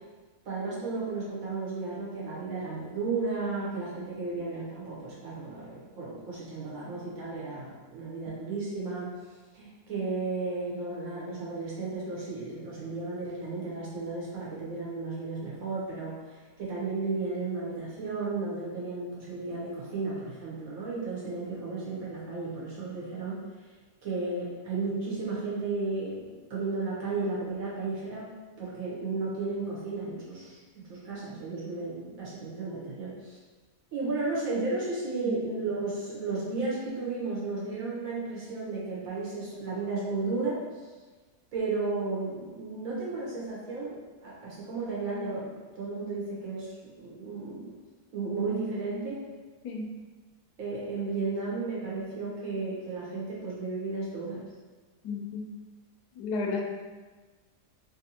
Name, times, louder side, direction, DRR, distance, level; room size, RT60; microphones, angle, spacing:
voice 1, 0.4-9.1 9.5-23.4 24.0-28.3 28.6-33.4 33.9-40.6 41.5-47.8 48.1-49.2 50.6-54.4, right 3 dB, 65° right, -6 dB, 1.3 m, -34 dB
voice 2, 55.0-55.5 56.2-56.7, left 3 dB, 80° left, 1 dB, 1.1 m, -32 dB
3.3 x 2.7 x 2.7 m, 1.3 s
omnidirectional pair, 1.7 m